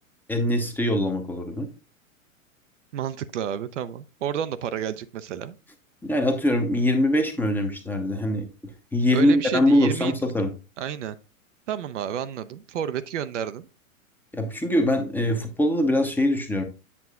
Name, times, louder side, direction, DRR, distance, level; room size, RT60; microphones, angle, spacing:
voice 1, 0.3-1.7 6.0-8.5 8.9-10.5 14.3-16.6, left 1 dB, 5° left, 0.8 m, -23 dB
voice 2, 2.9-5.6 9.1-10.1 10.8-11.1 11.7-13.7, right 9 dB, 60° right, 0.6 m, -30 dB
8.4 x 6.3 x 2.3 m
figure-of-eight pair, 105°, 41 cm